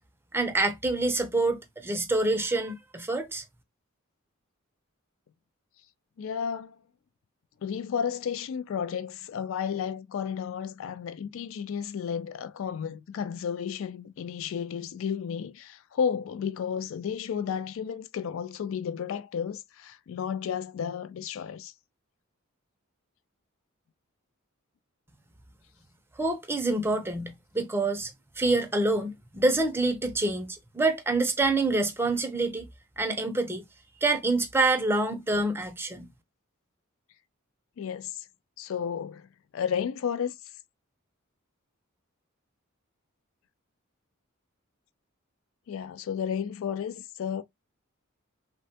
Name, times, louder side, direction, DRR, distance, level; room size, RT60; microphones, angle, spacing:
voice 1, 0.3-3.4 26.2-28.1 28.4-32.7 33.0-33.6 34.0-36.1, right 2 dB, 10° right, 0.5 m, -26 dB
voice 2, 6.2-6.8 7.6-21.7 37.8-38.3 38.6-39.3 39.5-40.3 45.7-47.4, left 7 dB, 65° left, 0.3 m, -32 dB
3.1 x 2.2 x 2.7 m
head